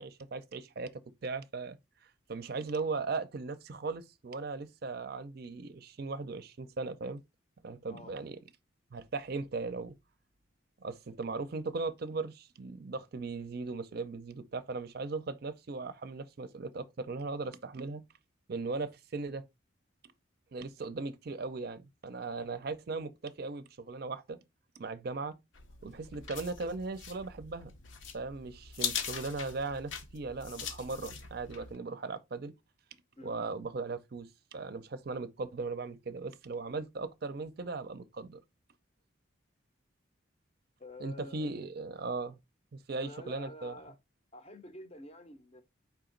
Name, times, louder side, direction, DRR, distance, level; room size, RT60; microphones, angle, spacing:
voice 1, 0.0-1.8 2.3-7.2 7.6-8.4 8.9-9.9 10.8-18.0 18.5-19.4 20.5-24.4 24.8-25.4 25.8-27.7 28.1-32.5 33.2-38.4 41.0-42.4 42.7-43.7, right 3 dB, 50° right, 0.5 m, -38 dB
sound 1, 25.5-31.8, left 7 dB, 75° left, 0.8 m, -41 dB
voice 2, 40.8-41.5 43.0-44.0 44.3-45.6, left 1 dB, 30° left, 0.6 m, -49 dB
4.6 x 2.9 x 3.8 m
head